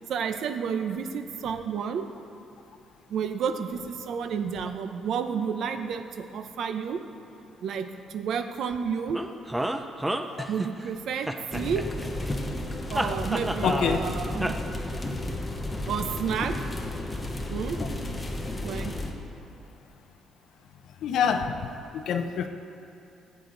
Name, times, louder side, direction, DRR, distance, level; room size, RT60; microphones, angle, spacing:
voice 1, 0.1-2.1 3.1-7.0 7.6-9.2 10.5-11.8 12.9-14.6 15.9-16.5 17.5-17.8 18.6-18.9, right 7 dB, 55° right, 7 dB, 0.7 m, -31 dB
sound 1, 9.1-10.9 11.3-12.3 12.9-14.1 14.4-14.5, right 1 dB, 5° right, 0.4 m, -30 dB
sound 2, 11.5-19.1, left 1 dB, 10° left, 0.9 m, -32 dB
voice 2, 13.6-14.0 21.0-21.6 21.9-22.5, left 7 dB, 60° left, 6 dB, 0.6 m, -26 dB
18.0 x 8.4 x 3.9 m, 2.9 s
cardioid pair, 180°, 0 cm